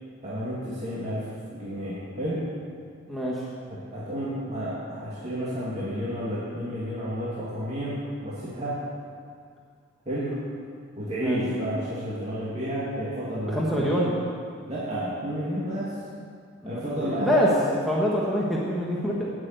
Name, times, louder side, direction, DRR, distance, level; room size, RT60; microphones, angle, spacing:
voice 1, 0.2-2.4 3.7-7.9 8.2-8.8 10.1-10.4 11.0-13.9 14.7-15.9 16.6-17.5, equal, 35° right, -10 dB, 2.4 m, -31 dB
voice 2, 3.1-3.4 11.2-11.4 13.5-14.1 16.6-19.3, equal, ahead, -6 dB, 1.3 m, -25 dB
9.0 x 8.2 x 9.2 m, 2.1 s
head